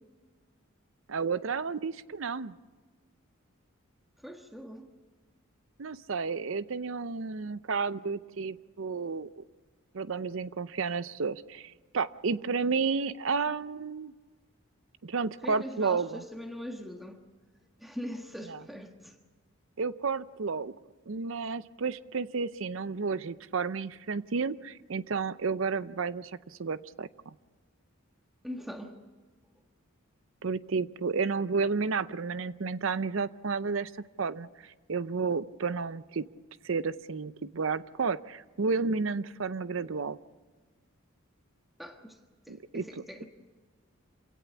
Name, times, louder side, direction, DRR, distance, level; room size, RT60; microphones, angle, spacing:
voice 1, 1.1-2.5 5.8-9.4 9.9-14.1 15.0-16.2 18.5-18.6 19.8-20.7 21.1-27.1 30.4-33.9 34.2-36.3 36.6-40.2 42.5-42.8, right 4 dB, 65° right, 0.6 m, -31 dB
voice 2, 4.2-4.9 15.4-17.2 17.8-19.2 28.4-29.0 41.8-42.2 42.5-43.3, equal, ahead, 1.4 m, -41 dB
27.0 x 17.0 x 7.1 m
head